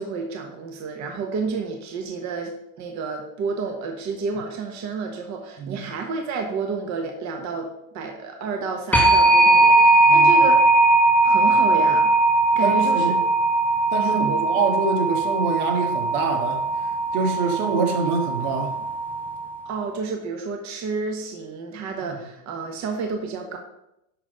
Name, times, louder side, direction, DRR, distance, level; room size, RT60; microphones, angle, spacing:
voice 1, 0.0-10.6 11.2-12.1 12.5-13.1 14.0-14.6 19.6-23.6, right 4 dB, 35° right, 3 dB, 1.2 m, -30 dB
voice 2, 5.6-5.9 10.1-10.3 12.6-13.2 13.9-16.7 17.1-18.8, right 4 dB, 70° right, 4 dB, 1.9 m, -25 dB
sound 1, 8.9-19.5, right 2 dB, 5° left, 0.4 m, -19 dB
11.0 x 4.2 x 5.0 m, 0.84 s
supercardioid pair, 125°, 47 cm